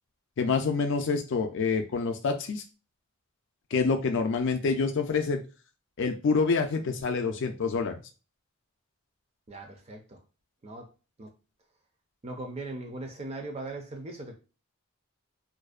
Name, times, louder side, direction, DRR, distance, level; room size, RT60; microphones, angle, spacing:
voice 1, 0.4-2.6 3.7-5.4 6.0-8.0, left 4 dB, 55° left, 0.4 m, -27 dB
voice 2, 9.5-10.2 10.6-10.9 11.2-11.3 12.2-14.3, right 2 dB, 30° right, 0.4 m, -39 dB
2.5 x 2.0 x 2.4 m
head